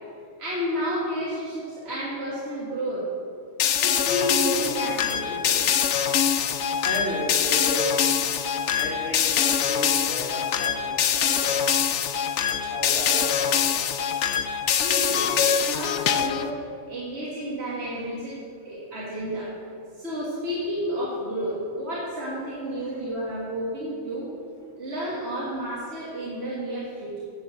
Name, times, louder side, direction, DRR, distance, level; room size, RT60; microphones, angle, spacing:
voice 1, 0.4-3.0 3.8-5.6 14.8-16.6 16.9-19.5 20.0-24.3 24.8-27.2, equal, 55° right, -6 dB, 2.1 m, -31 dB
sound 1, 3.6-16.5, left 8 dB, 70° left, 0.9 m, -24 dB
voice 2, 6.8-8.4 8.7-11.6 12.4-13.7 14.3-14.4, right 1 dB, 50° left, -5 dB, 2.4 m, -34 dB
9.8 x 7.1 x 7.7 m, 2.2 s
omnidirectional pair, 1.3 m